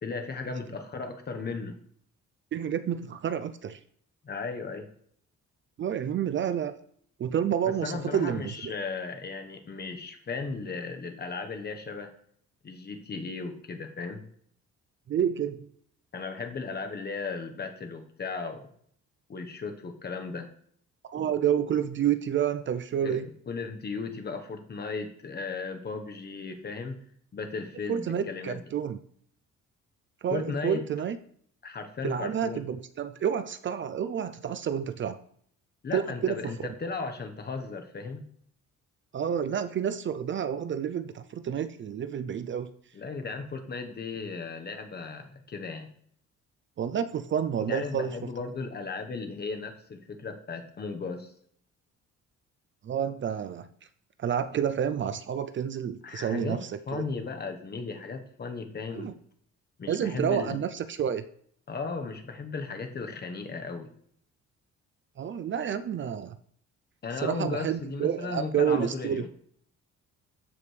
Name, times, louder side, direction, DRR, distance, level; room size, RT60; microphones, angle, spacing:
voice 1, 0.0-1.7 4.2-4.9 7.6-12.1 12.6-14.2 16.1-18.7 19.3-20.5 21.1-21.3 23.0-23.2 23.5-27.0 27.3-28.6 30.3-30.8 31.6-32.6 35.8-38.2 42.9-45.9 47.7-51.3 56.0-59.1 59.8-60.6 61.7-63.9 67.0-69.3, left 4 dB, 35° left, 5 dB, 1.1 m, -36 dB
voice 2, 2.5-3.8 5.8-6.7 7.2-8.7 15.1-15.7 21.0-23.3 27.9-29.0 30.2-31.2 32.0-35.2 35.9-36.5 39.1-42.7 46.8-48.2 52.8-53.7 54.2-57.1 58.9-59.1 59.9-61.2 65.2-66.4 67.2-69.2, right 8 dB, 40° right, 11 dB, 0.4 m, -29 dB
14.0 x 5.1 x 3.3 m, 0.62 s
cardioid pair, 130°, 29 cm